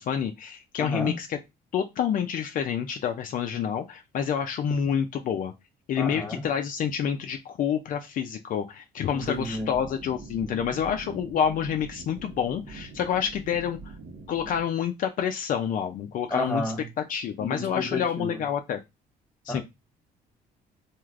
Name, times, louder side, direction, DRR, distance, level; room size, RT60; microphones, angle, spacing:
voice 1, 0.0-1.4 1.7-5.5 5.9-13.8 14.3-16.6 17.1-18.8 19.5-19.6, left 8 dB, 55° left, 0.4 m, -28 dB
voice 2, 0.8-1.2 6.0-6.4 9.1-9.7 16.3-16.8 17.4-18.4 19.5-19.6, left 2 dB, 10° left, 0.9 m, -31 dB
sound 1, 9.1-14.6, right 4 dB, 65° right, 1.1 m, -44 dB
3.2 x 2.5 x 2.4 m
cardioid pair, 110°, 17 cm